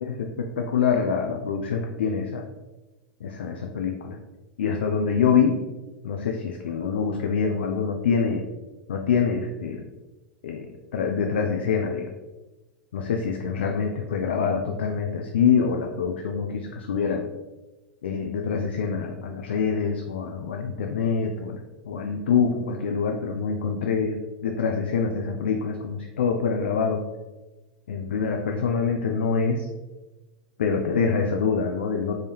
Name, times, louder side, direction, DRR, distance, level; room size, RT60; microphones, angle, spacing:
voice 1, 0.0-2.4 3.2-4.2 4.6-5.6 6.0-8.4 8.9-9.9 10.4-10.7 10.9-12.1 12.9-17.2 18.0-21.6 21.9-27.0 27.9-29.7 30.6-32.1, left 6 dB, 80° left, 3 dB, 0.3 m, -25 dB
3.6 x 2.6 x 3.4 m, 1.1 s
hypercardioid pair, 95°, 6 cm